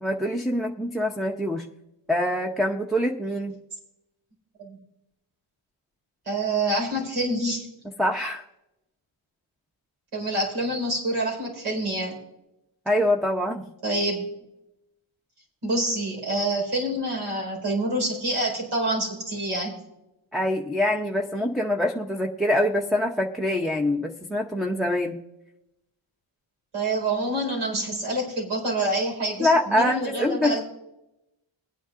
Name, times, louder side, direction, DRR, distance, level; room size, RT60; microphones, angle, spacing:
voice 1, 0.0-1.7 2.1-3.5 8.0-8.4 12.9-13.6 20.3-25.2 29.4-30.6, left 1 dB, ahead, 1 dB, 0.7 m, -24 dB
voice 2, 6.3-7.7 10.1-12.2 13.8-14.2 15.6-19.8 26.7-30.6, right 1 dB, 75° right, -1 dB, 4.7 m, -27 dB
21.5 x 9.3 x 2.5 m, 0.89 s
wide cardioid pair, 105°, 50 cm